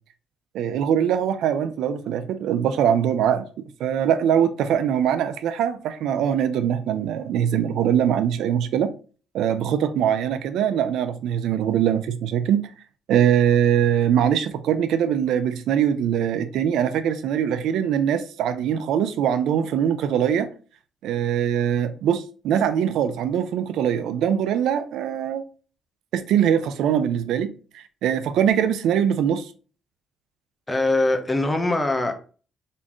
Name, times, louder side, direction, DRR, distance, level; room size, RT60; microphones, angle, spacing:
voice 1, 0.5-3.4 3.8-8.9 9.3-12.6 13.1-20.5 21.0-25.4 26.1-29.5, right 9 dB, 85° right, 0.5 m, -22 dB
voice 2, 30.7-32.1, left 2 dB, 15° left, 1.0 m, -22 dB
4.2 x 3.6 x 3.0 m
cardioid pair, 90°, 0 cm